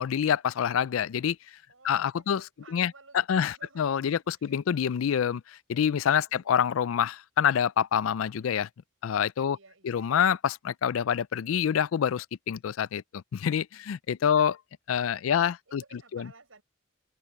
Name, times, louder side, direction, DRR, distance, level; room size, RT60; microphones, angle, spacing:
voice 1, 0.0-1.4 1.8-2.4 2.7-2.9 3.3-5.4 5.7-8.7 9.0-9.6 9.8-14.5 14.9-15.8 16.1-16.3, left 8 dB, 90° left, 0.4 m, -26 dB
voice 2, 1.7-3.8 4.1-4.9 6.3-7.0 9.5-10.1 14.3-14.5 15.3-16.6, right 3 dB, 80° right, 6.3 m, -55 dB
head